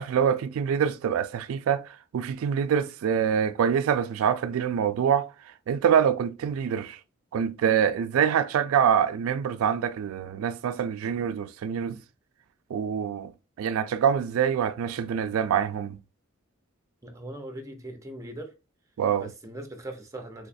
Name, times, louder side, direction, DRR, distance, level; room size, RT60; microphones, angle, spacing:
voice 1, 0.0-5.3 5.7-7.0 7.3-12.0 12.7-13.3 13.6-16.0 19.0-19.2, right 8 dB, 80° right, 0.3 m, -25 dB
voice 2, 17.0-18.5 19.2-20.5, right 1 dB, 15° right, 0.6 m, -40 dB
3.4 x 3.1 x 2.5 m
head